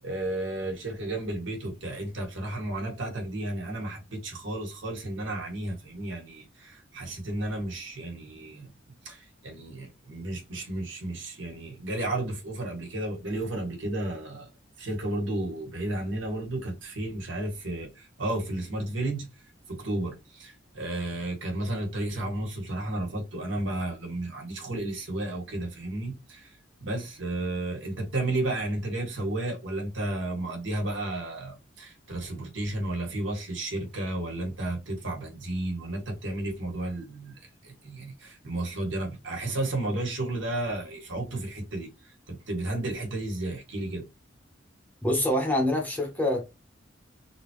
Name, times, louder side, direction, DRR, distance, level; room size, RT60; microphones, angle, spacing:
voice 1, 0.0-8.7 9.0-14.5 14.8-19.3 19.7-26.5 26.8-41.9 42.3-44.0, right 1 dB, 75° right, 1.5 m, -33 dB
voice 2, 45.0-46.4, left 1 dB, 10° left, 0.9 m, -25 dB
3.7 x 2.3 x 3.0 m
head